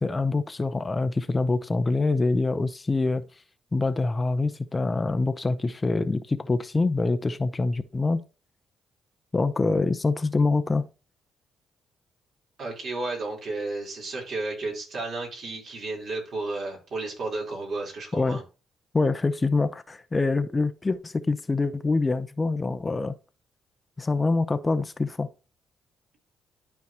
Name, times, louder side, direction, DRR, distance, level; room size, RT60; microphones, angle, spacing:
voice 1, 0.0-3.3 3.7-8.2 9.3-10.9 18.1-18.4 18.9-23.1 24.0-25.3, left 3 dB, 25° left, 0.6 m, -25 dB
voice 2, 12.6-18.4, right 2 dB, 60° right, 3.8 m, -32 dB
12.0 x 4.6 x 2.9 m
cardioid pair, 75°, 0 cm